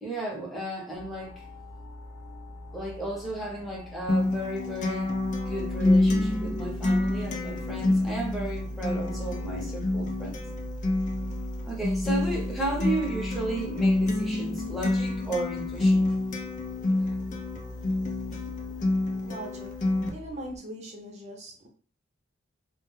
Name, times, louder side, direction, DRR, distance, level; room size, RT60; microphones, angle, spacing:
voice 1, 0.0-1.4 2.7-5.1 5.5-10.4 11.7-16.1 17.0-17.1 18.3-18.4, right 2 dB, ahead, -4 dB, 0.8 m, -34 dB
sound 1, 0.9-20.6, equal, 65° left, 0.8 m, -39 dB
Acoustic guitar, 4.1-20.1, left 2 dB, 40° left, 0.4 m, -28 dB
voice 2, 19.2-21.7, right 1 dB, 35° right, 0 dB, 0.7 m, -41 dB
2.1 x 2.1 x 3.1 m, 0.40 s
head